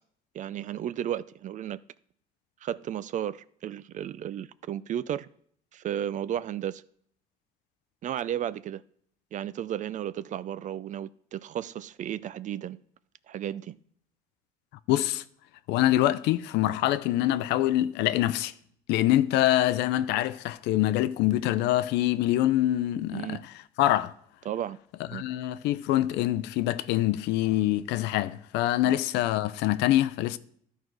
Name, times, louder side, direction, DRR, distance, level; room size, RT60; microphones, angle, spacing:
voice 1, 0.3-1.8 2.6-5.3 5.7-6.8 8.0-8.8 9.3-12.8 13.3-13.8 23.1-23.4 24.5-24.8 25.1-25.2 28.8-28.9, right 10 dB, 50° right, 0.4 m, -33 dB
voice 2, 14.9-15.2 15.7-18.5 18.9-23.4 23.8-24.1 25.1-30.4, left 14 dB, 90° left, 0.5 m, -25 dB
12.5 x 4.5 x 4.7 m
cardioid pair, 110°, 17 cm